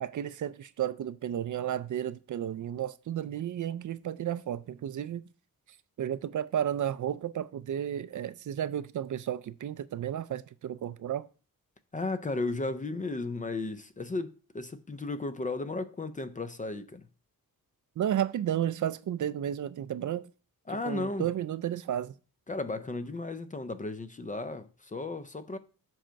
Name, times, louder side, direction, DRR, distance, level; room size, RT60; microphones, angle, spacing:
voice 1, 0.0-5.2 6.0-11.3 18.0-20.3 20.8-22.1, right 10 dB, 55° right, 0.4 m, -32 dB
voice 2, 11.9-17.1 20.7-21.3 22.5-25.6, left 2 dB, 20° left, 0.4 m, -34 dB
7.6 x 5.1 x 4.5 m
wide cardioid pair, 165°, 36 cm